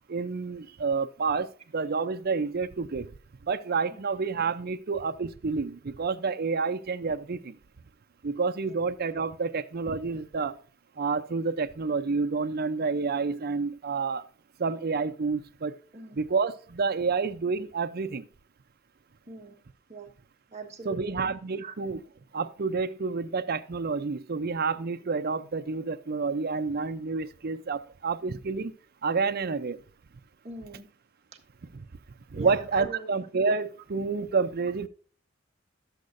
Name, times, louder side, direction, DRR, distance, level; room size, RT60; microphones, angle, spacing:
voice 1, 0.1-3.1 3.5-7.6 8.2-10.6 11.0-14.2 14.6-15.8 16.1-18.3 20.8-22.0 22.3-28.7 29.0-29.8 31.7-31.8 32.3-34.9, right 4 dB, 50° right, 0.6 m, -29 dB
voice 2, 20.5-21.2 21.6-21.7 30.4-30.9 32.4-33.1, right 4 dB, 35° right, 1.5 m, -41 dB
11.5 x 8.0 x 2.6 m
head